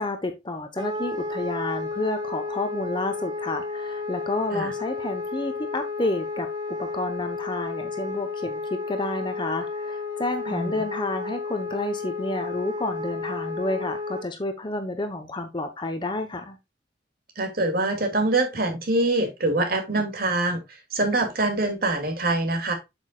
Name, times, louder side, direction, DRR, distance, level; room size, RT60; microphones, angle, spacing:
voice 1, 0.0-16.6, left 2 dB, 25° left, 1.0 m, -30 dB
Wind instrument woodwind instrument, 0.8-14.3, left 3 dB, 25° right, 1.7 m, -32 dB
voice 2, 10.5-10.8 17.4-22.7, right 2 dB, 55° right, 2.4 m, -25 dB
8.2 x 7.1 x 2.3 m
head